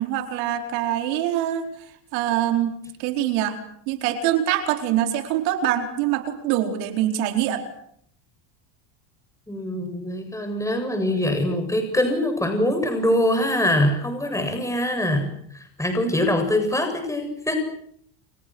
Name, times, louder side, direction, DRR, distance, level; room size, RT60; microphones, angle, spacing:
voice 1, 0.0-1.6 2.1-2.7 3.0-3.6 3.9-7.6, right 11 dB, 85° right, 6 dB, 4.6 m, -24 dB
voice 2, 9.5-17.6, left 1 dB, 5° left, 5 dB, 7.8 m, -23 dB
29.5 x 29.5 x 6.4 m, 0.69 s
supercardioid pair, 120°, 49 cm